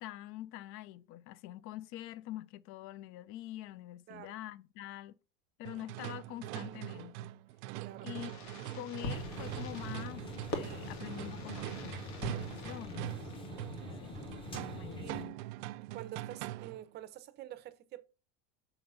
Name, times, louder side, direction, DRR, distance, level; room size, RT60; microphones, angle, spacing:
voice 1, 0.0-5.1 5.6-7.3 8.0-8.3 8.7-12.0 12.3-13.3 14.0-14.2 14.7-15.4, left 14 dB, 35° left, 0.4 m, -45 dB
sound 1, 5.6-16.9, right 16 dB, 70° right, 0.6 m, -43 dB
Fireworks, 8.1-13.7, left 2 dB, 60° left, 2.2 m, -44 dB
sound 2, 9.0-15.2, left 1 dB, 15° left, 1.0 m, -45 dB
voice 2, 15.8-18.0, right 13 dB, 30° right, 0.6 m, -47 dB
6.9 x 3.8 x 5.4 m
cardioid pair, 165°, 36 cm